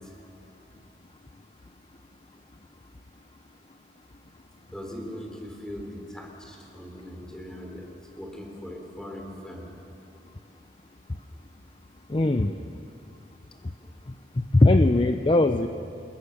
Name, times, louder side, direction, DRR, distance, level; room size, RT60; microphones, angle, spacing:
voice 1, 4.7-9.7, equal, 5° left, 0 dB, 3.8 m, -40 dB
voice 2, 12.1-12.6 14.4-15.7, left 2 dB, 30° left, 8 dB, 0.6 m, -20 dB
27.0 x 22.0 x 6.6 m, 2.7 s
head